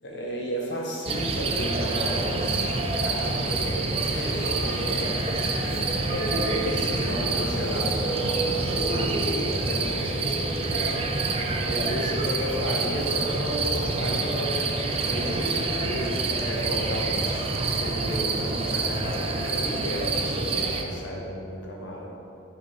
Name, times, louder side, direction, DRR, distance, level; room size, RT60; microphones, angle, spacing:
voice 1, 0.0-5.1 5.6-5.8 6.1-11.0 11.6-17.2 17.6-22.1, equal, 70° left, -2 dB, 1.4 m, -33 dB
sound 1, 1.1-20.8, right 3 dB, 30° right, 0.5 m, -27 dB
sound 2, 2.2-8.7, left 2 dB, 55° left, 0.6 m, -39 dB
7.2 x 5.6 x 4.4 m, 2.6 s
head